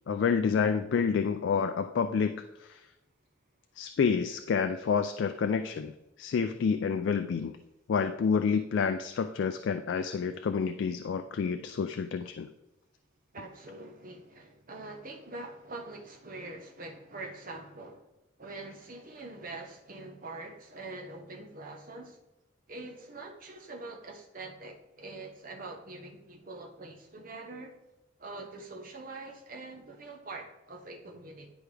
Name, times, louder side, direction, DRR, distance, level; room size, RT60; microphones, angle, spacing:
voice 1, 0.1-2.8 3.8-5.9 6.2-7.6 7.9-12.5, left 6 dB, 60° left, 8 dB, 0.3 m, -29 dB
voice 2, 13.3-18.1 18.4-22.2 22.7-27.7 28.2-31.5, right 2 dB, 40° right, 1 dB, 1.0 m, -44 dB
10.0 x 4.6 x 3.4 m, 0.95 s
head